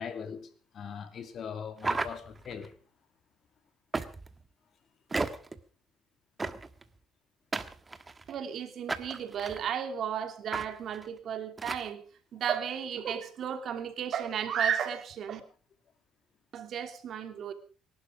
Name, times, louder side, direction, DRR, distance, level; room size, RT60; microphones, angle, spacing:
voice 1, 0.0-2.8, left 7 dB, 50° left, 2.5 m, -40 dB
sound 1, 1.8-2.7 3.9-4.4 5.1-5.6 6.4-6.8 7.5-8.3 8.9-9.6 10.5-10.7 10.9-11.1 11.6-11.9, right 3 dB, 20° right, 1.4 m, -34 dB
voice 2, 8.3-12.0 12.3-15.4 16.5-17.5, right 8 dB, 55° right, 2.8 m, -33 dB
24.5 x 12.0 x 5.0 m
cardioid pair, 115°, 0 cm